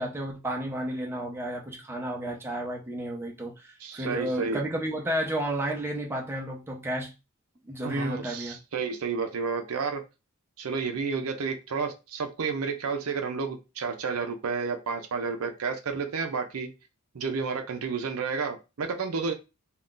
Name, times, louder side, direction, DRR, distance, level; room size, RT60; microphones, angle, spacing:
voice 1, 0.0-7.1 7.6-8.6, right 1 dB, 10° right, 0.6 m, -32 dB
voice 2, 3.8-4.6 7.8-10.0 10.6-16.7 17.1-19.3, right 5 dB, 80° right, 0.5 m, -31 dB
2.5 x 2.3 x 3.7 m
head